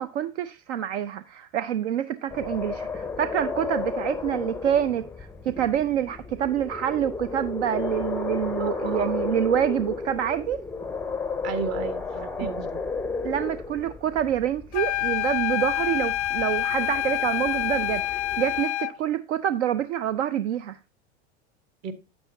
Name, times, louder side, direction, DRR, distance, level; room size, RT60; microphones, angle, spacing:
voice 1, 0.0-10.6 13.2-20.8, right 10 dB, 75° right, 0.6 m, -27 dB
sound 1, 2.3-18.6, left 4 dB, 5° left, 0.4 m, -33 dB
voice 2, 8.6-9.2 11.4-12.8 21.8-21.9, right 6 dB, 50° right, 1.4 m, -33 dB
sound 2, 14.7-19.0, left 14 dB, 85° left, 0.5 m, -27 dB
8.7 x 8.3 x 2.6 m
hypercardioid pair, 95°, 34 cm